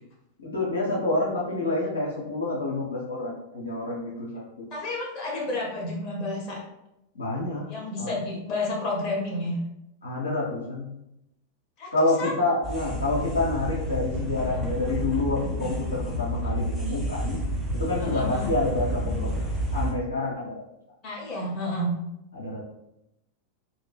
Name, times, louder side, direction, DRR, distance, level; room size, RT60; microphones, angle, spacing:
voice 1, 0.4-4.7 7.1-7.7 8.0-8.1 10.0-10.9 11.9-17.4 17.7-19.5 19.7-20.6 22.3-22.6, left 2 dB, 75° left, -5 dB, 0.6 m, -28 dB
voice 2, 4.7-6.6 7.7-9.6 11.8-11.9 12.2-12.3 14.5-14.6 16.4-16.6 18.0-18.5 21.0-22.0, left 1 dB, 35° left, -3 dB, 0.8 m, -31 dB
sound 1, 12.6-19.9, equal, 10° right, 0.7 m, -30 dB
2.4 x 2.1 x 3.3 m, 0.86 s
figure-of-eight pair, 90°, 0 cm